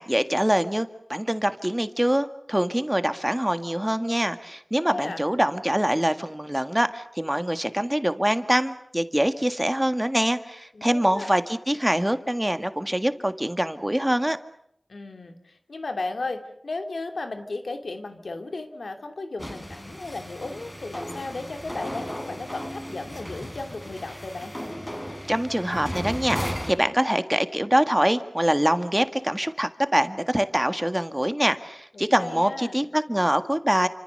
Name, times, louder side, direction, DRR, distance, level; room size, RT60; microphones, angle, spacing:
voice 1, 0.0-14.4 25.3-33.9, right 1 dB, 10° right, 9 dB, 1.8 m, -24 dB
voice 2, 4.8-5.2 10.7-11.3 14.9-24.5 31.9-32.8, left 3 dB, 90° left, 6 dB, 2.8 m, -35 dB
sound 1, 19.4-26.8, equal, 15° left, 4.5 m, -35 dB
29.0 x 25.5 x 6.7 m, 0.74 s
wide cardioid pair, 55°, 0 cm